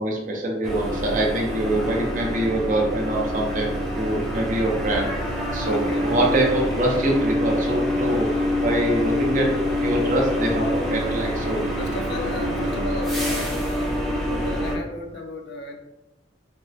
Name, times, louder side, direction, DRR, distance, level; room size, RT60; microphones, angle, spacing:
voice 1, 0.0-8.3 8.6-9.5 9.8-11.6, right 1 dB, 45° right, -1 dB, 0.6 m, -24 dB
sound 1, 0.6-14.8, left 1 dB, ahead, 0.5 m, -26 dB
voice 2, 5.6-6.2 11.8-15.8, left 2 dB, 60° left, 4 dB, 0.4 m, -34 dB
3.4 x 2.1 x 2.7 m, 0.99 s
head